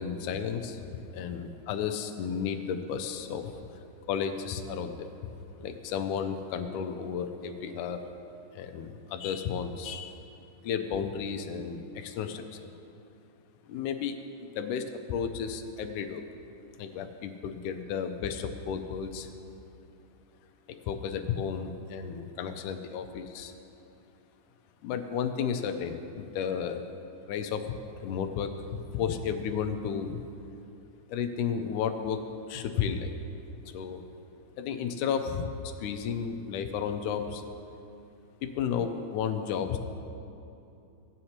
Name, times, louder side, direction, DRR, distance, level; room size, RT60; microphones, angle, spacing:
voice 1, 0.0-3.5 4.1-5.1 5.6-8.0 8.6-10.2 10.6-12.7 13.7-14.2 14.6-16.2 16.8-19.3 20.7-23.5 24.8-26.8 27.3-27.8 28.0-30.2 31.1-32.2 32.5-33.1 33.7-34.0 34.6-35.5 35.8-37.4 38.4-39.8, left 7 dB, 80° left, 7 dB, 2.0 m, -33 dB
15.5 x 9.3 x 2.9 m, 2.8 s
omnidirectional pair, 3.7 m